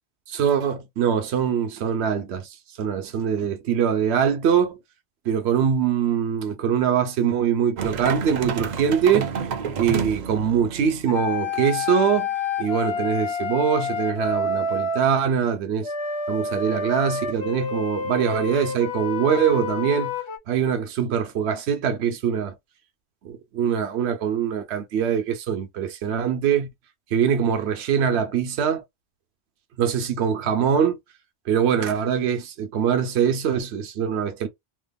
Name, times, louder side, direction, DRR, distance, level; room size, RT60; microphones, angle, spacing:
voice 1, 0.4-4.8 5.3-9.3 9.8-12.3 12.6-15.9 16.3-20.1 20.5-22.6 23.2-26.7 27.1-28.8 29.8-31.0 31.5-34.5, right 8 dB, 75° right, 0.9 m, -23 dB
sound 1, 7.8-11.1, right 6 dB, 55° right, 0.5 m, -29 dB
sound 2, 11.1-15.0 15.8-20.4, left 4 dB, 40° left, 0.4 m, -28 dB
2.9 x 2.2 x 3.4 m
omnidirectional pair, 1.1 m